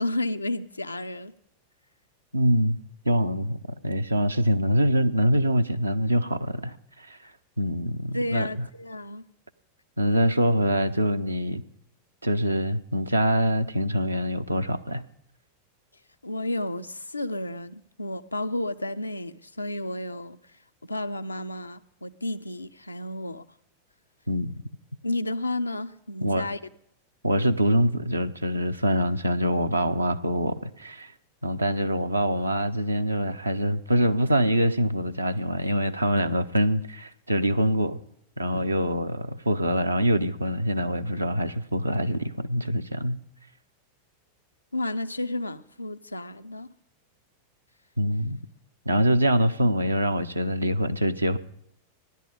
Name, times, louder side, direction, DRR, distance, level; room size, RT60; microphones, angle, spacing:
voice 1, 0.0-1.3 8.1-9.3 16.2-23.4 25.0-26.6 44.7-46.7, left 1 dB, 85° left, 0.5 m, -32 dB
voice 2, 2.3-2.8 3.0-7.3 7.6-8.5 10.0-11.6 12.2-15.0 24.3-24.5 26.2-26.5 27.2-31.1 31.4-38.0 38.4-43.2 48.0-48.4 48.9-51.4, equal, 85° right, 0.6 m, -24 dB
16.0 x 11.0 x 5.0 m
figure-of-eight pair, 90°, 0 cm